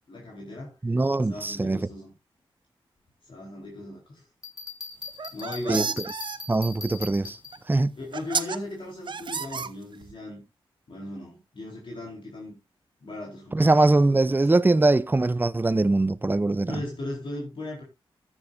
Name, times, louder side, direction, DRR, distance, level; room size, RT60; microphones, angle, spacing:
voice 1, 0.1-0.7 1.1-2.1 3.3-4.2 5.3-6.0 8.0-10.4 10.9-12.6 13.0-14.4 16.7-17.8, left 2 dB, 60° left, 4.2 m, -37 dB
voice 2, 0.8-1.9 5.7-5.9 6.5-7.4 7.7-7.9 13.5-16.8, right 2 dB, 20° right, 0.6 m, -22 dB
Bell, 4.4-7.8, left 3 dB, 35° left, 2.6 m, -40 dB
sound 1, 5.1-6.4 7.5-7.6 8.1-8.6 9.1-10.1, right 6 dB, 55° right, 0.7 m, -31 dB
14.0 x 9.9 x 2.6 m
cardioid pair, 70°, 10 cm